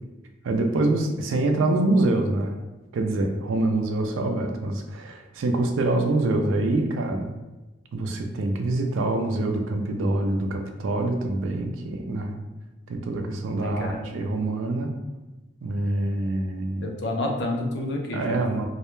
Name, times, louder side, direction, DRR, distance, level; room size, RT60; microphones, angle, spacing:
voice 1, 0.4-2.5 2.9-7.3 7.9-12.4 12.9-14.9 15.6-17.0 18.1-18.6, right 2 dB, 80° right, 5 dB, 0.3 m, -25 dB
voice 2, 13.6-14.1 16.8-18.4, left 1 dB, 60° left, 1 dB, 0.4 m, -29 dB
2.3 x 2.1 x 3.0 m, 1.1 s
head